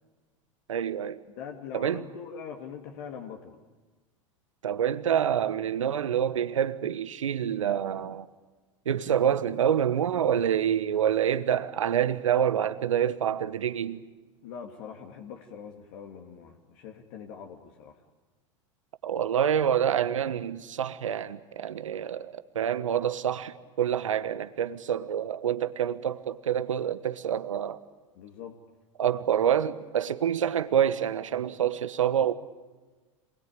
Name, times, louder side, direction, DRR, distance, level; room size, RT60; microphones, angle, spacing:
voice 1, 0.7-1.2 1.7-2.0 4.6-8.3 8.8-14.0 19.0-27.8 29.0-32.3, right 9 dB, 80° right, 1.2 m, -27 dB
voice 2, 1.4-3.6 14.4-18.0 28.2-28.6, left 7 dB, 60° left, 2.4 m, -42 dB
27.5 x 21.0 x 9.0 m
hypercardioid pair, 90°, 16 cm